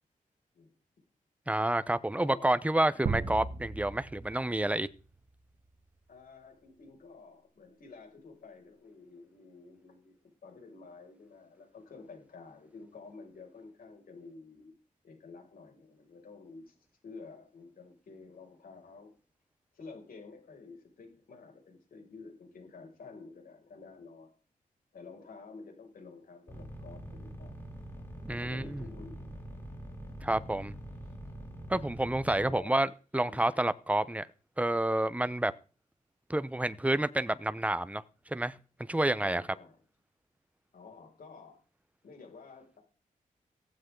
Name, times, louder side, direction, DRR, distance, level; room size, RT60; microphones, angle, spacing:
voice 1, 1.5-4.9 28.2-28.8 30.2-30.7 31.7-34.3 34.6-35.5 36.3-38.5 38.8-39.4, right 1 dB, 10° right, 0.9 m, -29 dB
voice 2, 2.2-2.6 6.1-14.7 15.0-16.7 17.0-19.1 19.7-24.3 24.9-27.6 28.0-29.3 30.2-30.4 32.4-32.8 33.3-33.5 39.2-39.7 40.7-41.6 42.0-42.8, left 4 dB, 80° left, 6.4 m, -51 dB
sound 1, 3.1-5.0, right 5 dB, 60° right, 2.0 m, -36 dB
sound 2, 26.5-32.5, equal, 15° left, 7.1 m, -44 dB
17.0 x 15.0 x 3.9 m
wide cardioid pair, 85°, 15 cm